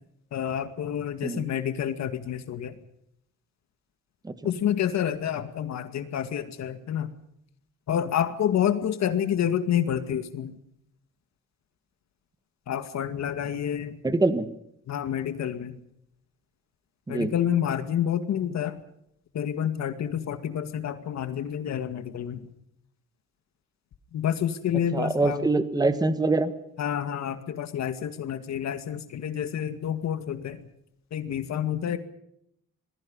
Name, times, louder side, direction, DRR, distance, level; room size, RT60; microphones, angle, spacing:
voice 1, 0.3-2.8 4.4-7.2 7.9-10.6 12.7-14.0 14.9-15.8 17.1-18.8 19.3-22.5 24.1-25.5 26.8-30.6 31.1-32.0, left 9 dB, 55° left, 9 dB, 2.2 m, -28 dB
voice 2, 14.0-14.5 17.1-17.3 24.9-26.5, right 3 dB, 10° right, 11 dB, 1.5 m, -24 dB
27.5 x 21.0 x 5.5 m, 0.75 s
cardioid pair, 145°, 33 cm